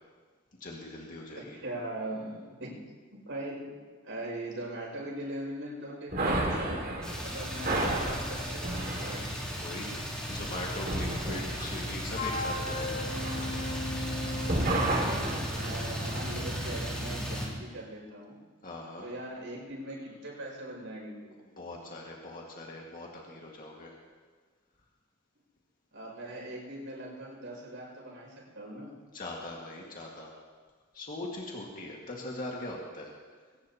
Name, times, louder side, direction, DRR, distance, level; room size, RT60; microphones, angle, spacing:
voice 1, 0.6-1.6 9.6-10.0 10.3-13.1 17.3-17.4 18.6-19.1 21.6-23.9 29.1-30.3 30.9-33.1, left 2 dB, 45° left, -2 dB, 2.0 m, -41 dB
voice 2, 1.4-2.8 3.1-3.8 4.0-9.3 15.1-18.4 19.0-21.4 25.9-28.9, right 1 dB, 70° right, -2 dB, 6.3 m, -40 dB
sound 1, 6.1-14.1 14.4-16.8, right 2 dB, 50° right, 2.4 m, -33 dB
sound 2, 7.0-17.5, equal, 5° left, 3.2 m, -35 dB
Wind instrument woodwind instrument, 12.1-15.0, left 2 dB, 60° left, 5.2 m, -36 dB
22.0 x 18.5 x 3.0 m, 1.5 s
head